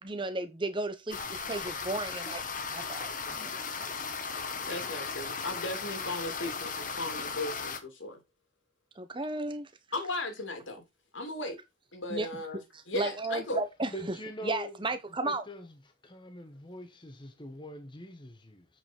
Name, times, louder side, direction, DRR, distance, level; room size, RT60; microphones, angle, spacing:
voice 1, 0.0-2.4 2.7-3.9 9.0-9.7 12.1-12.4 12.7-14.2 14.4-15.4, right 2 dB, 25° right, 1.0 m, -34 dB
sound 1, 1.1-7.8, left 5 dB, 45° left, 1.4 m, -36 dB
voice 2, 4.7-8.2 9.9-10.8 11.1-11.6 11.9-12.6 12.9-13.6, left 2 dB, 85° left, 3.0 m, -36 dB
voice 3, 13.9-14.8 15.2-15.7 16.0-18.7, left 1 dB, 25° left, 1.4 m, -43 dB
8.2 x 5.4 x 4.6 m
head